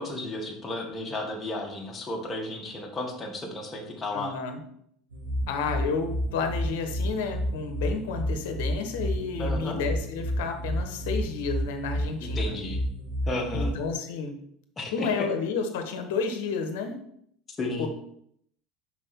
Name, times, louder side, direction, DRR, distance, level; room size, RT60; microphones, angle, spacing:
voice 1, 0.0-4.4 9.4-9.8 12.2-12.8 13.3-13.7 14.8-15.2 17.6-17.9, left 2 dB, 25° left, 1 dB, 1.6 m, -33 dB
voice 2, 4.1-4.6 5.5-12.5 13.5-14.4 14.9-17.0 17.8-17.9, left 5 dB, 70° left, 6 dB, 1.0 m, -31 dB
sound 1, 5.1-13.9, equal, 85° right, 1.8 m, -31 dB
5.4 x 4.4 x 4.2 m, 0.69 s
hypercardioid pair, 80°, 0 cm